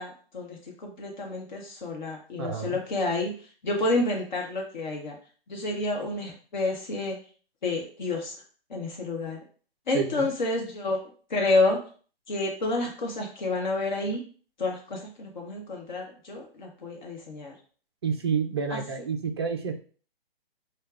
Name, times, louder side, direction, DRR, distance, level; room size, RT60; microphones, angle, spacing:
voice 1, 0.0-3.3 3.6-5.2 5.5-7.2 7.6-8.3 8.7-9.4 9.9-11.8 12.3-14.2 14.6-17.5 18.7-18.8, left 2 dB, 50° left, 0 dB, 1.0 m, -29 dB
voice 2, 2.4-2.8 9.9-10.3 18.0-19.8, right 6 dB, 25° right, 4 dB, 0.4 m, -29 dB
6.3 x 2.2 x 2.4 m, 0.42 s
figure-of-eight pair, 135°, 30 cm